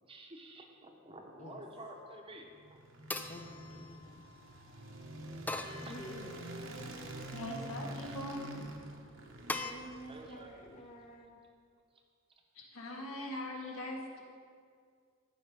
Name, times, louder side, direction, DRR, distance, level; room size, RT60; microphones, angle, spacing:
voice 1, 0.1-2.8 4.1-4.2 5.8-6.0 10.1-10.5 13.1-13.2, right 1 dB, 25° right, 2 dB, 0.9 m, -50 dB
sound 1, 1.8-2.3 3.1-4.5 5.5-6.6 7.1-7.8 9.5-9.7, left 3 dB, 10° left, 0.3 m, -42 dB
sound 2, 2.4-10.8, right 1 dB, 60° right, 1.0 m, -46 dB
voice 2, 3.3-4.2 5.8-6.4 9.6-11.3, equal, 35° left, 0 dB, 0.7 m, -49 dB
voice 3, 7.3-8.5 12.5-14.2, left 1 dB, 75° left, -1 dB, 1.7 m, -41 dB
13.5 x 5.4 x 5.3 m, 2.1 s
head